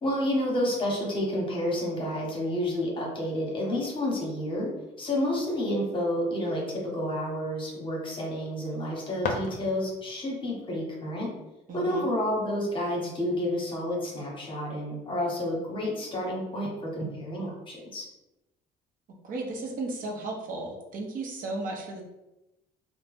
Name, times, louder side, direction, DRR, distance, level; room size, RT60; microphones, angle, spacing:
voice 1, 0.0-4.7 5.0-11.3 11.7-18.0, left 1 dB, 30° left, -2 dB, 0.9 m, -30 dB
sound 1, 8.7-10.2, left 4 dB, 55° left, 0.5 m, -35 dB
voice 2, 11.7-12.1 19.2-22.0, right 2 dB, 55° right, 0 dB, 0.7 m, -34 dB
2.8 x 2.0 x 3.4 m, 0.95 s
cardioid pair, 110°, 17 cm